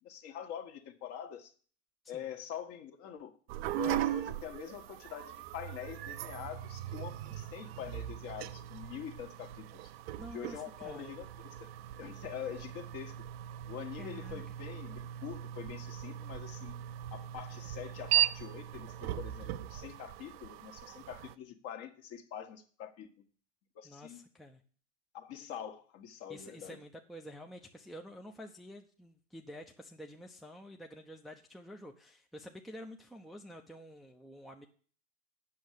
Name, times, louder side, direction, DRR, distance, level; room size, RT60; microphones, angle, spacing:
voice 1, 0.0-1.5 2.1-3.4 3.7-9.8 10.3-11.7 12.0-13.2 13.7-16.7 17.1-23.1 23.8-24.2 25.1-26.8, left 9 dB, 40° left, 6 dB, 1.7 m, -45 dB
sound 1, 3.5-21.3, right 13 dB, 55° right, 0.7 m, -38 dB
voice 2, 10.2-11.2 14.0-14.4 23.8-24.6 26.3-34.7, equal, ahead, 3 dB, 0.7 m, -49 dB
8.6 x 6.5 x 8.2 m, 0.43 s
hypercardioid pair, 110°, 36 cm